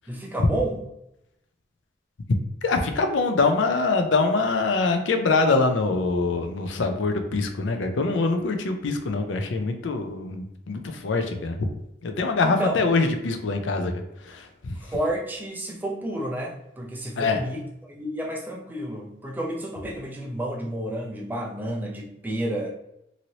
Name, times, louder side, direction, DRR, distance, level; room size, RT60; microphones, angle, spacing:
voice 1, 0.1-0.8 12.4-12.8 14.8-22.7, right 1 dB, 10° right, -1 dB, 0.5 m, -31 dB
voice 2, 2.3-11.7 12.0-14.9 17.2-17.4, left 3 dB, 85° left, 6 dB, 0.5 m, -24 dB
3.0 x 2.7 x 2.7 m, 0.82 s
head